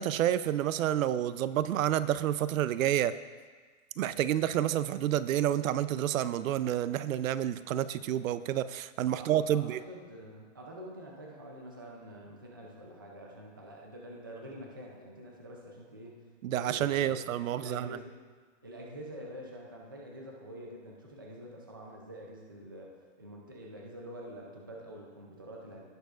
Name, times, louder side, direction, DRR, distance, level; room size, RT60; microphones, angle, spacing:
voice 1, 0.0-3.1 4.0-9.8 16.4-17.9, right 11 dB, 85° right, 15 dB, 0.6 m, -29 dB
voice 2, 9.1-16.2 16.5-17.3 17.6-18.2 18.6-25.9, equal, 20° right, -1 dB, 0.3 m, -46 dB
17.0 x 6.7 x 2.4 m, 1.5 s
hypercardioid pair, 170°, 39 cm